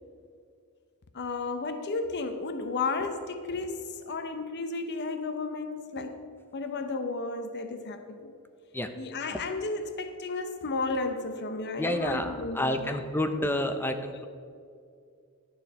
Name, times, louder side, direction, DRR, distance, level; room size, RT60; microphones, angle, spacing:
voice 1, 1.1-6.3 6.5-8.3 8.9-13.0 13.7-13.9 14.1-14.2, left 3 dB, 50° left, 0.7 m, -33 dB
voice 2, 11.8-14.3, left 1 dB, 10° left, 0.5 m, -29 dB
11.5 x 7.1 x 5.2 m
head